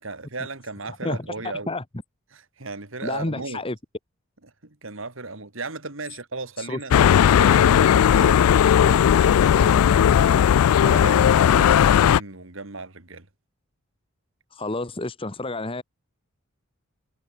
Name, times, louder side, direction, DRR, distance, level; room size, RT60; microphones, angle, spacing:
voice 1, 0.0-1.7 2.3-3.6 4.4-6.9 7.4-13.3, right 3 dB, 60° right, 2.5 m, -36 dB
voice 2, 1.0-1.3 1.7-1.8 3.0-3.7 6.6-6.8 14.5-15.8, left 2 dB, 25° left, 1.2 m, -29 dB
sound 1, 6.9-12.2, left 9 dB, 85° left, 0.3 m, -16 dB
head